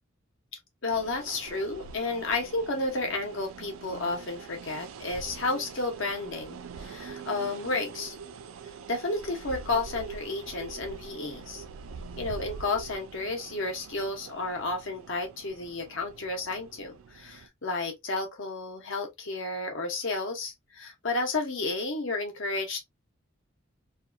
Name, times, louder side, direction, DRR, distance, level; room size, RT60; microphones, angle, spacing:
voice 1, 0.8-8.2 8.9-11.6 12.2-22.8, left 3 dB, 65° left, 0.9 m, -32 dB
sound 1, 0.9-17.5, right 5 dB, 80° right, 0.4 m, -44 dB
2.6 x 2.3 x 2.5 m
head